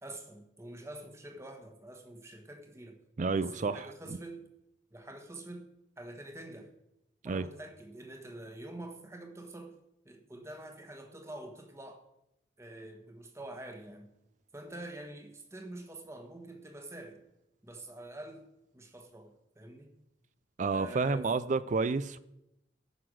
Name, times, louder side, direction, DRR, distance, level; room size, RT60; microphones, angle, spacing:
voice 1, 0.0-3.0 3.3-4.5 4.9-5.7 6.0-6.7 7.2-9.7 10.0-12.0 12.6-14.1 14.5-17.2 17.6-18.5 18.7-19.9 20.7-21.3, right 1 dB, 15° right, 1.3 m, -46 dB
voice 2, 3.2-4.2 7.2-7.5 20.6-22.2, right 4 dB, 40° right, 0.4 m, -30 dB
15.0 x 5.9 x 6.3 m
head